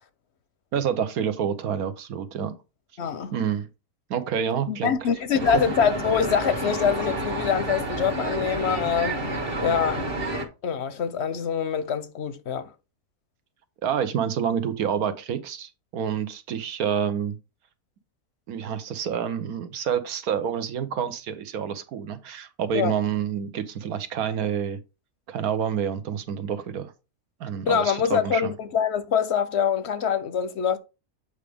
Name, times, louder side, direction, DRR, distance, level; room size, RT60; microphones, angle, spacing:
voice 1, 0.7-2.5 3.3-3.7 4.1-4.9 5.3-5.4 13.8-17.4 18.5-24.8 25.3-26.9 27.4-28.5, right 8 dB, 75° right, 1.3 m, -28 dB
voice 2, 3.0-3.3 4.7-9.2 9.6-10.1 10.6-12.7 22.7-22.9 27.6-30.8, left 7 dB, 55° left, 0.8 m, -24 dB
sound 1, 5.4-10.4, right 1 dB, 40° right, 1.6 m, -29 dB
8.1 x 4.9 x 3.5 m
omnidirectional pair, 1.6 m